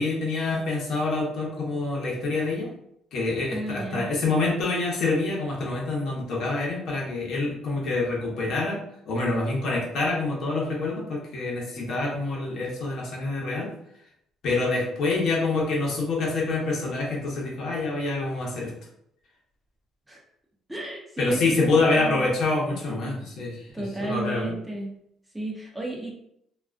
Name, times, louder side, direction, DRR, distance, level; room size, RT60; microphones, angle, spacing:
voice 1, 0.0-2.7 3.1-8.8 9.1-13.7 14.4-18.7 21.2-23.6 24.0-24.4, left 3 dB, 65° left, -2 dB, 0.8 m, -26 dB
voice 2, 3.5-4.1 20.1-20.2 20.7-22.4 23.7-24.9 25.3-26.1, right 1 dB, 10° right, -2 dB, 0.5 m, -33 dB
2.3 x 2.2 x 2.4 m, 0.73 s
cardioid pair, 115°, 0 cm